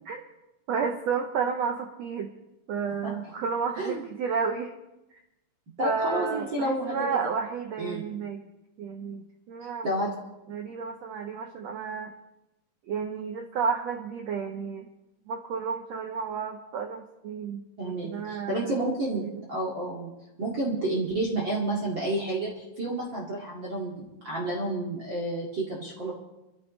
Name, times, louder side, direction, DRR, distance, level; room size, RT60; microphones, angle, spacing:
voice 1, 0.7-2.3 2.7-4.7 5.8-8.4 8.8-9.9 10.5-12.1 12.9-14.9 15.3-18.7 19.1-19.4, right 6 dB, 80° right, 4 dB, 1.5 m, -31 dB
voice 2, 5.8-7.0 7.8-8.0 9.6-10.1 17.8-20.1 20.4-26.1, right 1 dB, 35° right, -4 dB, 2.4 m, -30 dB
26.0 x 13.5 x 3.2 m, 0.96 s
omnidirectional pair, 4.0 m